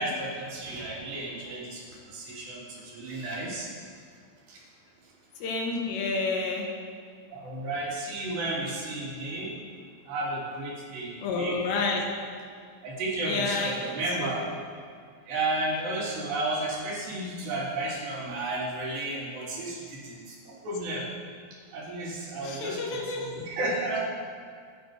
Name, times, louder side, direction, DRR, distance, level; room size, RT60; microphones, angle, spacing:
voice 1, 0.0-4.0 4.5-4.6 7.3-9.6 10.1-11.6 12.8-14.4 15.3-21.1 21.7-24.0, right 2 dB, 55° right, -5 dB, 5.2 m, -33 dB
voice 2, 5.4-6.7 11.2-12.1 13.3-13.9 14.2-14.3 22.4-23.3, left 3 dB, 60° left, 0 dB, 3.8 m, -29 dB
27.0 x 9.4 x 5.1 m, 2.1 s
omnidirectional pair, 5.9 m